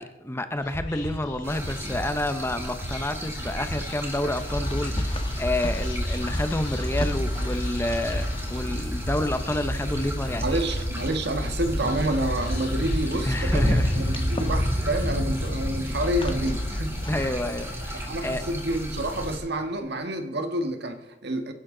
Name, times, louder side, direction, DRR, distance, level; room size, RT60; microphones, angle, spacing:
voice 1, 0.0-10.6 13.2-13.9 17.1-18.4, left 1 dB, 15° left, 9 dB, 0.8 m, -29 dB
Whispering, 0.6-15.2, equal, 80° left, 7.7 m, -38 dB
sound 1, 1.4-19.4, equal, 15° right, 3.0 m, -32 dB
sound 2, 4.3-17.3, left 1 dB, 30° left, 1.3 m, -31 dB
voice 2, 10.4-17.4 17.9-21.5, right 1 dB, 60° right, 7 dB, 1.6 m, -29 dB
28.0 x 11.5 x 3.9 m, 1.0 s
head